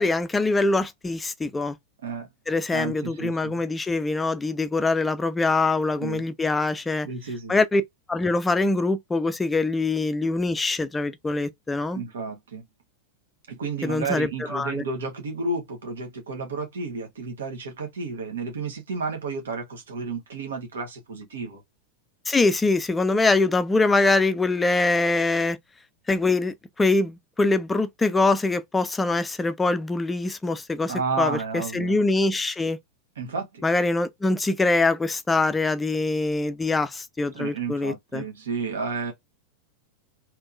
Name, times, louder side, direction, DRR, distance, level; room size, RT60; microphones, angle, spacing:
voice 1, 0.0-1.8 2.5-7.1 7.5-7.8 8.1-12.0 13.8-14.8 22.3-25.6 26.1-32.8 33.6-38.3, left 3 dB, 10° left, 0.5 m, -23 dB
voice 2, 2.7-3.6 6.0-6.2 7.0-7.6 11.9-12.6 13.5-21.6 30.9-32.0 33.2-33.6 37.3-39.1, right 4 dB, 65° right, 1.3 m, -32 dB
3.5 x 2.9 x 2.5 m
figure-of-eight pair, 90°, 0 cm